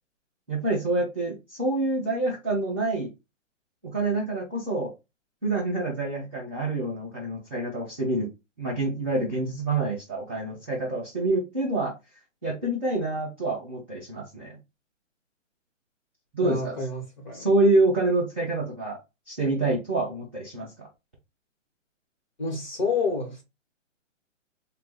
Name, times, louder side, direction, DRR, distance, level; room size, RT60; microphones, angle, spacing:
voice 1, 0.5-3.1 3.9-4.9 5.4-8.3 8.6-11.9 12.4-14.6 16.3-16.8 17.3-19.0 19.3-20.9, right 2 dB, 10° right, 0.6 m, -27 dB
voice 2, 16.4-17.5 22.4-23.4, left 3 dB, 35° left, 1.2 m, -29 dB
3.0 x 2.3 x 4.1 m
hypercardioid pair, 180°, 38 cm